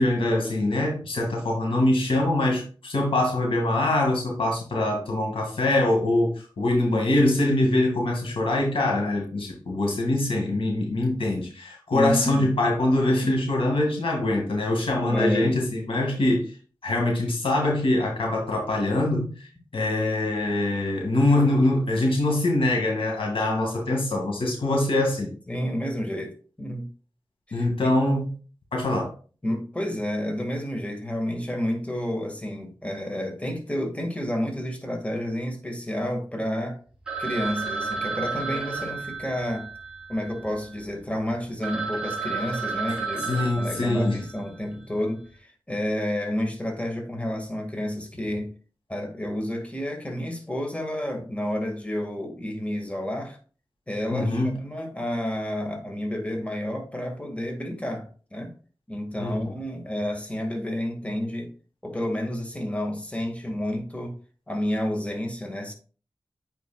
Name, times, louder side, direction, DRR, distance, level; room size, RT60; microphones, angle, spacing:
voice 1, 0.0-16.5 16.8-19.3 19.7-25.3 27.5-28.3 28.7-29.1 43.3-44.2 54.1-54.6 59.2-59.4, left 1 dB, 85° left, 2.0 m, -23 dB
voice 2, 11.9-12.6 15.1-15.6 25.5-26.9 27.5-27.9 29.4-36.8 37.2-39.7 40.1-48.5 48.9-53.4 53.9-58.5 58.9-61.5 61.8-64.2 64.5-65.7, left 1 dB, 15° left, 1.8 m, -30 dB
Telephone, 37.1-40.8 41.3-41.4 41.6-44.5, right 4 dB, 10° right, 3.0 m, -32 dB
9.1 x 4.6 x 2.3 m
cardioid pair, 40°, 9 cm